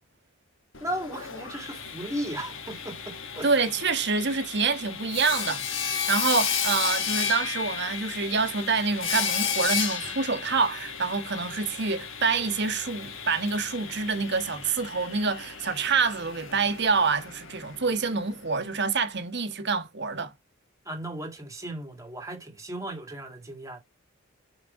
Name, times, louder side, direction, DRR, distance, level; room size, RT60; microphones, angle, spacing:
Sawing, 0.7-18.6, left 7 dB, 65° left, 1.4 m, -33 dB
voice 1, 0.8-3.5 20.9-23.8, right 1 dB, 15° right, 2.0 m, -36 dB
voice 2, 3.4-20.3, right 4 dB, 55° right, 1.4 m, -27 dB
6.3 x 4.4 x 4.7 m
head